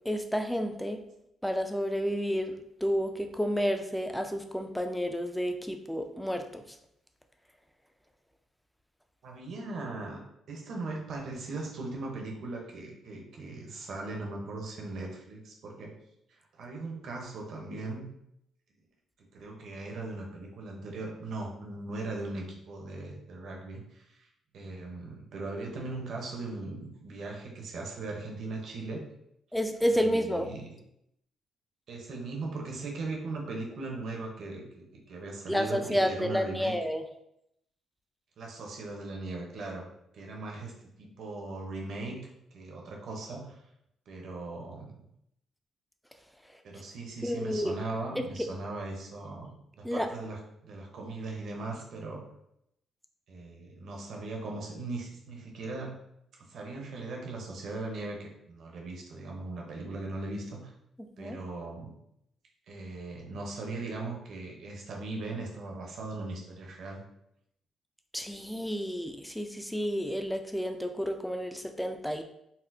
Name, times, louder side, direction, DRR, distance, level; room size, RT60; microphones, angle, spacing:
voice 1, 0.1-1.0 1.4-2.5 2.8-6.6 29.5-30.5 35.5-37.0 47.2-47.8 49.8-50.1 61.2-61.4 68.1-72.2, equal, 5° left, 6 dB, 0.4 m, -30 dB
voice 2, 9.2-10.2 10.5-16.0 16.3-18.1 19.3-24.3 24.5-29.0 29.8-30.7 31.9-36.7 38.4-39.9 40.1-42.2 42.5-43.6 44.1-44.9 46.6-52.3 53.3-56.0 56.5-60.7 61.2-61.9 62.7-67.0, right 2 dB, 65° right, 0 dB, 0.8 m, -39 dB
4.1 x 2.1 x 2.6 m, 0.78 s
cardioid pair, 90°, 0 cm